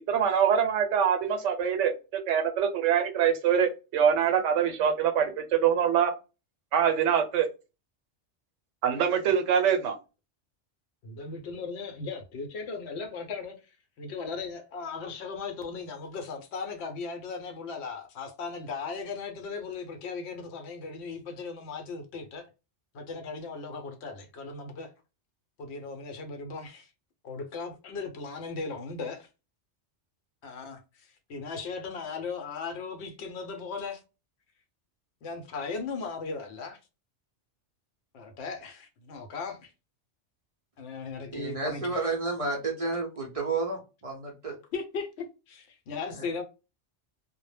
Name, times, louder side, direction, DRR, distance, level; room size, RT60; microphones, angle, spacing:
voice 1, 0.1-6.1 6.7-7.5 8.8-10.0, right 8 dB, 85° right, 0.9 m, -24 dB
voice 2, 11.0-13.6 14.0-22.5 22.9-24.9 25.6-26.9 27.2-29.3 30.4-34.0 35.2-36.8 38.1-39.7 40.8-42.0 44.7-46.4, left 4 dB, 70° left, 0.8 m, -37 dB
voice 3, 41.3-44.6 46.1-46.3, right 3 dB, 45° right, 0.5 m, -31 dB
2.1 x 2.0 x 3.2 m
omnidirectional pair, 1.2 m